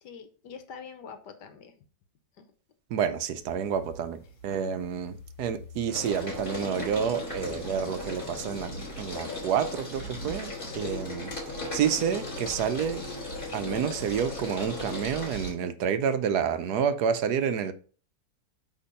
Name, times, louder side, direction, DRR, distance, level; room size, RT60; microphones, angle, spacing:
voice 1, 0.0-1.7 2.4-2.5 4.2-4.3 17.4-17.7, left 6 dB, 75° left, 1.6 m, -45 dB
voice 2, 2.9-8.7 9.0-11.3 11.7-13.0 13.5-17.7, right 7 dB, 70° right, 1.2 m, -29 dB
sound 1, 3.5-4.0 4.4-15.5, left 2 dB, 35° left, 3.8 m, -37 dB
8.5 x 3.6 x 5.2 m
omnidirectional pair, 1.8 m